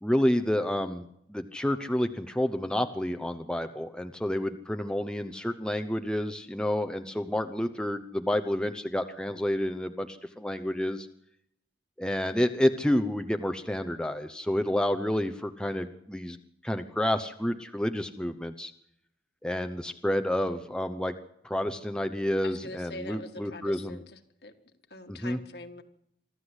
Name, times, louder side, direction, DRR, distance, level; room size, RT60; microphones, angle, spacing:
voice 1, 0.0-11.1 12.0-16.4 16.6-18.7 19.4-21.1 21.4-24.0 25.1-25.4, left 1 dB, 5° left, 8 dB, 0.8 m, -29 dB
voice 2, 22.4-24.5 24.9-25.8, left 2 dB, 65° left, 6 dB, 1.8 m, -43 dB
25.5 x 13.5 x 8.1 m, 0.76 s
head